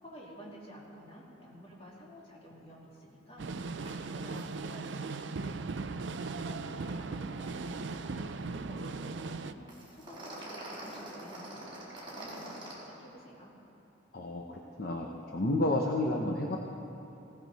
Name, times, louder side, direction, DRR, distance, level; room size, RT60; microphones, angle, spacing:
voice 1, 0.0-5.5 6.2-7.6 7.9-9.6 9.9-11.7 12.0-13.5, equal, 30° left, -4 dB, 2.8 m, -51 dB
sound 1, 3.4-9.5, right 3 dB, 65° right, 0.5 m, -38 dB
sound 2, 3.9-4.0 4.2-4.4 4.7-4.8 9.7-12.7, right 1 dB, 25° right, 4.1 m, -44 dB
voice 2, 14.1-16.6, left 1 dB, 50° left, 1 dB, 0.8 m, -31 dB
19.0 x 16.5 x 4.2 m, 3.0 s
head